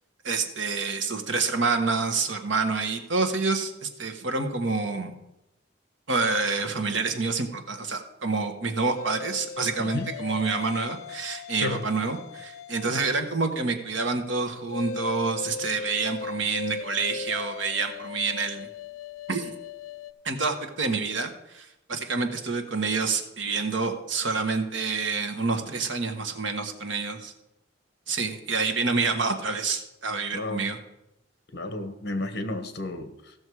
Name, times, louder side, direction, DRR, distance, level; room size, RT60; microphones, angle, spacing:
voice 1, 0.2-5.1 6.1-18.7 19.3-19.5 20.2-27.3 28.1-30.8, right 4 dB, 65° right, 6 dB, 1.3 m, -28 dB
sound 1, 8.9-13.3 14.7-20.1, left 6 dB, 90° left, 0.5 m, -38 dB
voice 2, 30.3-30.7 31.5-33.3, left 2 dB, 55° left, 9 dB, 1.2 m, -32 dB
15.5 x 6.4 x 4.8 m, 0.89 s
head